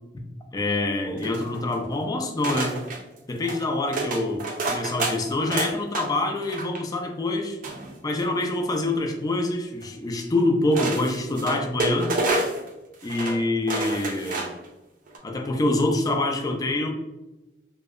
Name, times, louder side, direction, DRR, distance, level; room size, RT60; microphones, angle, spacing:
voice 1, 0.5-2.8 3.3-7.6 8.0-12.1 13.0-14.5 15.2-16.9, left 2 dB, 20° left, 3 dB, 0.3 m, -25 dB
sound 1, 1.2-1.8 2.4-3.0 3.4-3.6 3.9-6.1 6.4-6.8 7.6-8.4 9.8-9.9 10.7-12.7 13.0-13.4 13.7-14.6 15.1-15.2, right 2 dB, 50° right, 0.4 m, -29 dB
2.7 x 2.0 x 2.4 m, 1.0 s
head